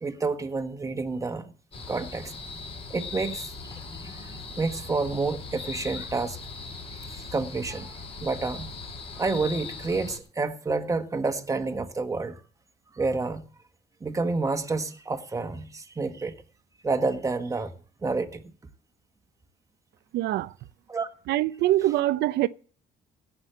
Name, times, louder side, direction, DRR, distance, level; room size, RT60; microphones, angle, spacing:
voice 1, 0.0-1.5 1.9-2.3 2.9-3.5 4.0-4.2 4.6-6.4 7.0-7.9 8.2-8.7 9.2-12.4 12.9-13.5 14.0-16.4 16.8-17.7 18.0-18.4 20.9-21.1, right 3 dB, 20° right, 1.6 m, -29 dB
sound 1, 1.7-10.2, left 4 dB, 35° left, 5.1 m, -39 dB
voice 2, 20.1-20.5 21.3-22.5, right 15 dB, 75° right, 0.8 m, -24 dB
17.0 x 6.3 x 7.8 m
cardioid pair, 110°, 17 cm